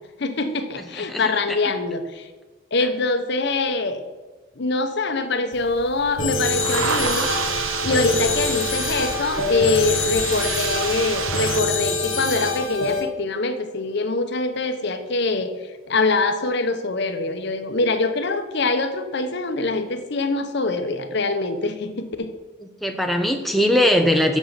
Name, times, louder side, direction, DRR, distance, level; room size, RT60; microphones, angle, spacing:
voice 1, 0.2-2.3 2.7-4.0 4.6-7.3 7.8-15.5 15.9-22.3, left 3 dB, 60° left, 8 dB, 0.8 m, -24 dB
voice 2, 0.9-1.6 22.8-24.4, left 1 dB, ahead, 3 dB, 0.6 m, -20 dB
sound 1, 5.5-11.6, right 7 dB, 85° right, 0.6 m, -29 dB
sound 2, 6.2-13.0, left 2 dB, 80° left, 1.6 m, -25 dB
7.1 x 6.3 x 6.7 m, 1.3 s
head